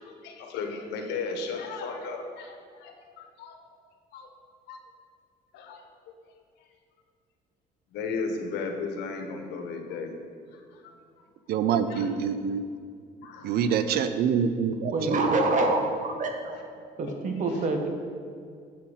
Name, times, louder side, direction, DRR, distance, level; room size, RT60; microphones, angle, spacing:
voice 1, 0.1-3.6 4.1-4.3 4.7-4.8 5.5-5.8 7.9-10.1 10.5-10.9 11.9-12.1 13.2-14.0 17.5-17.7, left 4 dB, 85° left, 4 dB, 1.2 m, -35 dB
voice 2, 11.5-12.6 13.4-15.4, right 7 dB, 65° right, 11 dB, 0.6 m, -26 dB
voice 3, 14.9-16.6 17.0-17.9, right 2 dB, 50° right, 4 dB, 1.2 m, -26 dB
7.9 x 6.6 x 5.6 m, 2.2 s
cardioid pair, 110°, 17 cm